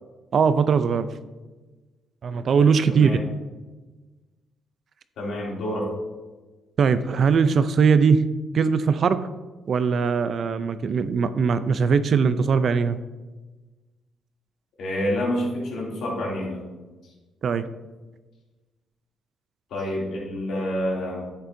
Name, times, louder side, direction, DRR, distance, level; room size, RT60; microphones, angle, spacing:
voice 1, 0.3-1.1 2.2-3.2 6.8-8.2 8.5-9.2 9.7-13.0 17.4-17.7, right 6 dB, 55° right, 12 dB, 0.5 m, -20 dB
voice 2, 2.9-3.2 5.2-5.9 14.8-16.6 19.7-21.3, left 1 dB, 80° left, -3 dB, 2.8 m, -28 dB
10.0 x 7.7 x 2.7 m, 1.2 s
cardioid pair, 90°, 0 cm